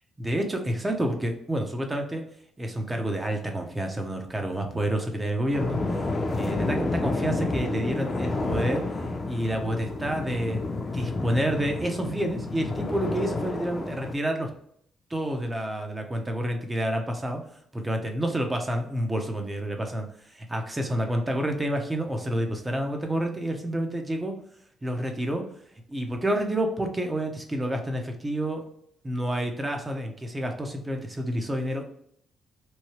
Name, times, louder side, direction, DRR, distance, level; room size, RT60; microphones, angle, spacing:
voice 1, 0.2-2.2 2.6-5.8 6.3-8.9 9.2-10.6 10.9-14.5 15.1-17.4 17.7-24.3 24.8-25.4 25.9-28.6 29.0-31.8, right 1 dB, 15° right, 4 dB, 0.6 m, -29 dB
sound 1, 5.5-14.1, left 2 dB, 35° left, 0.6 m, -30 dB
3.1 x 2.3 x 2.9 m, 0.67 s
cardioid pair, 90°, 0 cm